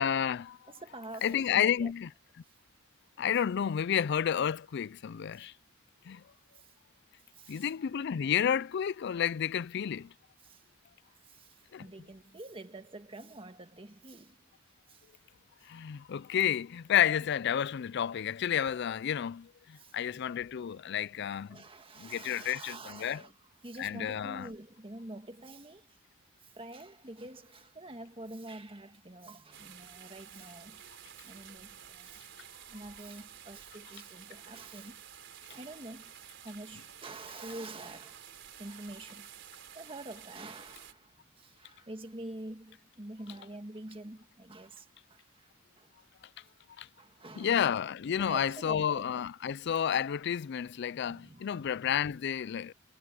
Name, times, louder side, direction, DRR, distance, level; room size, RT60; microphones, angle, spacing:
voice 1, 0.0-0.6 1.2-2.1 3.2-5.5 6.1-6.2 7.5-10.1 11.7-11.9 15.7-21.6 22.0-23.2 23.8-24.5 46.8-46.9 47.4-52.7, left 9 dB, 55° left, 0.4 m, -31 dB
voice 2, 0.7-1.9 5.3-5.5 6.5-6.7 7.3-7.7 10.4-10.6 11.2-14.5 14.9-15.1 17.1-17.2 19.8-20.3 21.5-23.3 23.6-25.9 26.4-30.8 31.2-32.3 32.7-35.0 35.5-36.2 36.4-38.3 38.6-39.3 39.7-45.5 45.7-45.9 47.0-47.6 48.2-49.1 51.1-51.7, right 2 dB, 25° right, 1.7 m, -47 dB
sound 1, 29.5-40.9, right 9 dB, 60° right, 4.1 m, -51 dB
head